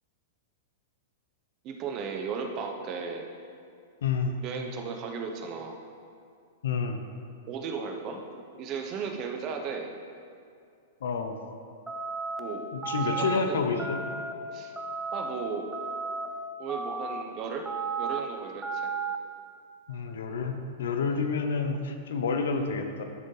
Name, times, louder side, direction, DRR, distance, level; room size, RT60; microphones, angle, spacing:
voice 1, 1.6-3.3 4.4-5.8 7.5-9.9 12.4-12.6 13.0-13.6 14.5-14.7 15.1-15.7 16.6-17.7 18.0-18.9 21.1-21.2, right 5 dB, 40° right, 3 dB, 0.8 m, -35 dB
voice 2, 4.0-4.3 6.6-7.0 11.0-11.4 12.7-14.0 19.9-23.0, left 5 dB, 80° left, 6 dB, 0.7 m, -29 dB
sound 1, 11.9-12.4 12.8-13.4 13.8-14.3 14.8-15.3 15.7-16.3 16.7-17.2 17.7-18.2 18.6-19.2, right 4 dB, 10° right, 0.5 m, -33 dB
12.0 x 4.4 x 3.3 m, 2.3 s
hypercardioid pair, 120°, 0 cm